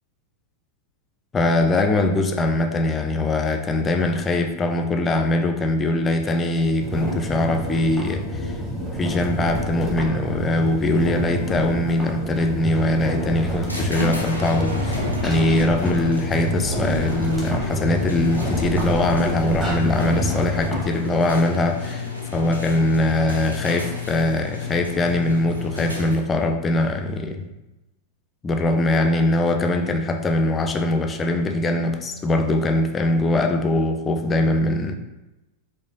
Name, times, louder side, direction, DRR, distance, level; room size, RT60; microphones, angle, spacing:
voice 1, 1.3-8.6 9.0-22.1 22.3-27.4 28.4-34.9, left 2 dB, 20° left, 5 dB, 0.3 m, -22 dB
sound 1, 6.8-20.9, right 1 dB, 5° right, 0.8 m, -27 dB
sound 2, 13.7-26.4, left 4 dB, 85° right, 0.6 m, -31 dB
4.8 x 2.0 x 2.5 m, 1.0 s
figure-of-eight pair, 90°, 0 cm